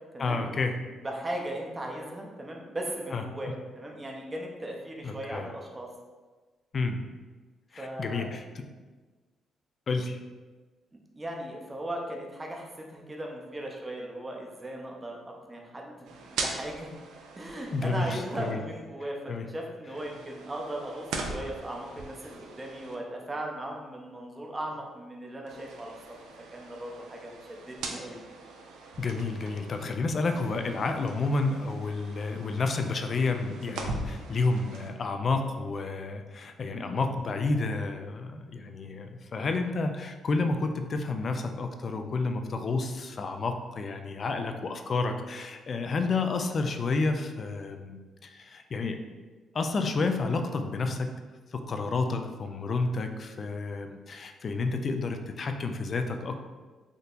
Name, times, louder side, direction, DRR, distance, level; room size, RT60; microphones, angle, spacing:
voice 1, 0.2-0.8 3.1-3.5 5.0-5.5 6.7-7.1 7.7-8.7 9.9-10.2 17.7-18.6 19.3-19.5 29.0-49.0 49.5-51.1 51.5-56.4, left 3 dB, 45° left, 6 dB, 0.3 m, -30 dB
voice 2, 1.0-5.9 7.8-8.3 11.1-15.2 15.5-16.9 17.3-19.2 19.4-25.9 26.5-27.3 27.6-28.2 36.7-37.0, right 1 dB, 20° right, 0 dB, 0.6 m, -37 dB
sound 1, 16.0-18.5 19.9-22.9 25.5-29.9 30.3-34.9, right 3 dB, 85° right, 0.4 m, -41 dB
3.6 x 2.7 x 2.5 m, 1.3 s
cardioid pair, 90°, 0 cm